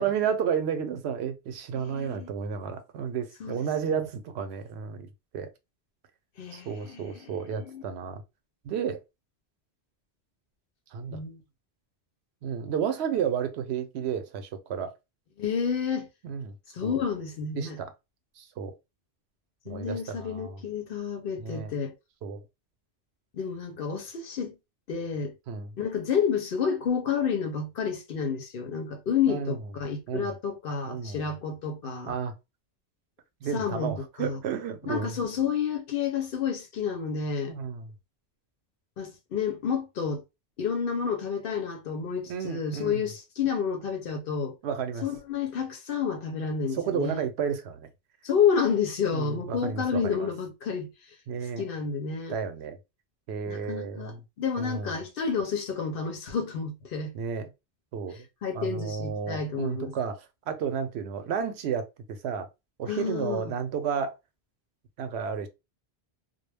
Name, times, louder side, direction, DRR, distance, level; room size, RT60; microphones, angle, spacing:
voice 1, 0.0-5.1 5.3-5.5 6.5-8.2 8.6-9.0 10.9-11.2 12.4-14.9 16.2-16.6 16.8-17.0 17.6-17.9 18.4-18.7 19.7-20.6 21.4-21.7 22.2-22.4 25.5-25.7 29.3-29.6 30.1-30.3 30.9-31.3 32.1-32.3 33.4-35.2 37.5-37.9 42.3-43.0 44.6-45.1 46.7-47.9 49.1-50.3 51.3-51.7 52.3-52.8 53.3-54.2 54.6-55.0 57.1-57.5 57.9-58.2 58.5-62.5 62.8-64.1 65.0-65.5, right 7 dB, 80° right, 0.8 m, -32 dB
voice 2, 1.7-2.3 3.4-4.1 6.4-7.3 7.5-7.8 11.1-11.4 15.4-16.1 16.7-17.8 19.7-21.9 23.3-24.6 24.9-25.3 25.8-32.2 33.5-34.4 34.9-37.5 39.0-40.2 40.6-44.5 45.0-47.3 48.2-50.9 51.6-52.3 53.5-57.1 58.4-59.9 62.9-63.5, left 6 dB, 60° left, 0.8 m, -30 dB
2.2 x 2.1 x 3.2 m
omnidirectional pair, 1.1 m